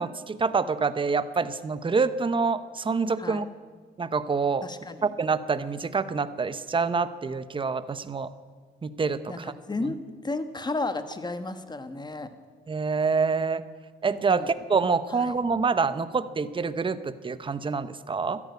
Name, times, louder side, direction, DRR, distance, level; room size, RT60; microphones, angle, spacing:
voice 1, 0.0-3.5 4.0-4.6 5.0-8.3 8.8-9.5 12.7-13.6 14.0-18.4, right 4 dB, 25° right, 13 dB, 0.8 m, -26 dB
voice 2, 4.6-5.1 9.3-9.4 9.7-10.0 10.2-12.3 14.3-14.5 15.1-15.3, left 2 dB, 20° left, 10 dB, 1.3 m, -33 dB
13.5 x 11.0 x 9.5 m, 1.5 s
cardioid pair, 90°, 20 cm